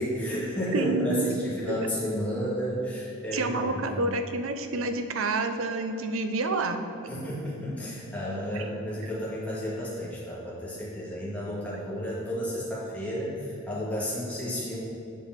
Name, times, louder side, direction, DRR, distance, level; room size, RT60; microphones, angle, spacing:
voice 1, 0.0-4.1 7.1-14.8, equal, 5° left, -8 dB, 1.9 m, -32 dB
voice 2, 0.7-1.3 3.3-6.8, right 3 dB, 70° right, 7 dB, 0.6 m, -28 dB
7.6 x 5.1 x 5.9 m, 2.8 s
head